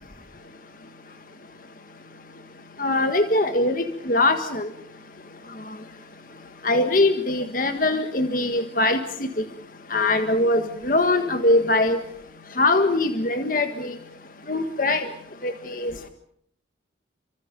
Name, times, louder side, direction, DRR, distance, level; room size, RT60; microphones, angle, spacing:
voice 1, 2.8-4.7 6.6-9.0 9.9-12.0 12.6-14.0 14.5-15.1 15.4-16.1, left 2 dB, 45° left, 7 dB, 1.6 m, -22 dB
30.0 x 24.5 x 5.3 m, 0.64 s
head